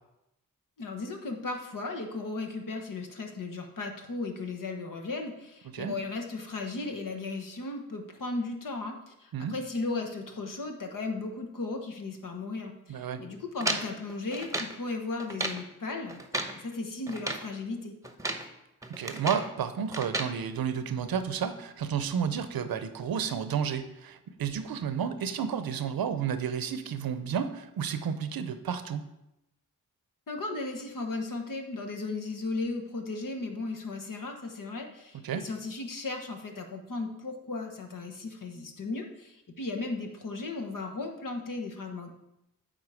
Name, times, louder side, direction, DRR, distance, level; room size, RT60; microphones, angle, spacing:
voice 1, 0.8-17.9 30.3-42.1, left 3 dB, 65° left, 4 dB, 1.2 m, -36 dB
voice 2, 5.7-6.0 9.3-9.6 12.9-13.2 18.9-29.0 35.2-35.4, right 7 dB, 80° right, 11 dB, 0.7 m, -31 dB
sound 1, 13.6-14.8 15.2-15.7 16.1-16.6 17.1-17.5 18.0-18.5 18.8-19.5 19.9-20.3, right 2 dB, 10° right, 1.0 m, -34 dB
9.0 x 3.8 x 4.9 m, 0.87 s
cardioid pair, 45°, 35 cm